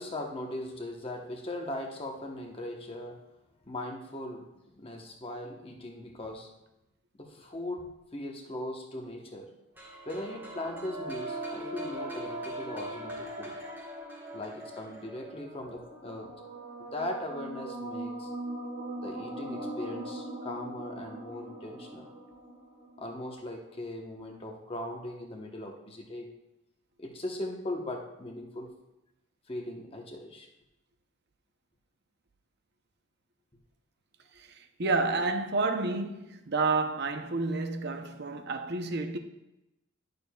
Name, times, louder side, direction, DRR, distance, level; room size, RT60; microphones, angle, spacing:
voice 1, 0.0-3.2 3.7-6.5 7.2-9.5 10.0-13.5 14.3-16.3 16.9-18.3 19.0-22.1 23.0-26.3 27.0-28.7 29.5-30.5, left 1 dB, 25° left, 0.9 m, -39 dB
sound 1, 9.8-15.3, right 2 dB, 10° right, 1.2 m, -49 dB
sound 2, 9.9-23.6, right 1 dB, 30° right, 1.3 m, -40 dB
voice 2, 34.4-39.2, right 3 dB, 50° right, 0.6 m, -30 dB
11.5 x 6.7 x 2.3 m
head